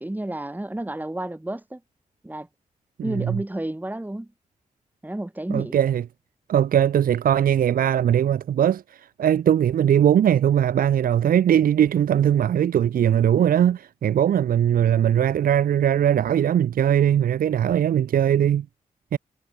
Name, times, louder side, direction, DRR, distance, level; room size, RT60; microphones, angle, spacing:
voice 1, 0.0-1.8 2.2-2.5 3.0-4.3 5.0-5.8, right 1 dB, 10° right, 1.6 m, -31 dB
voice 2, 3.0-3.4 5.5-6.0 6.5-18.7 19.1-19.2, right 10 dB, 80° right, 0.5 m, -20 dB
cardioid pair, 55°, 14 cm